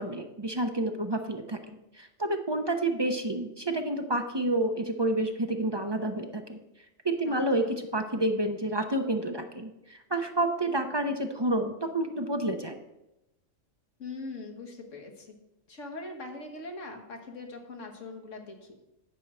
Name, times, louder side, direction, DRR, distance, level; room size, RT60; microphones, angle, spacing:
voice 1, 0.0-6.6 7.0-12.8, right 1 dB, 25° right, 5 dB, 0.6 m, -29 dB
voice 2, 7.3-7.8 14.0-15.4 15.7-18.9, left 3 dB, 70° left, 3 dB, 1.9 m, -42 dB
10.0 x 4.6 x 7.4 m, 0.93 s
omnidirectional pair, 1.3 m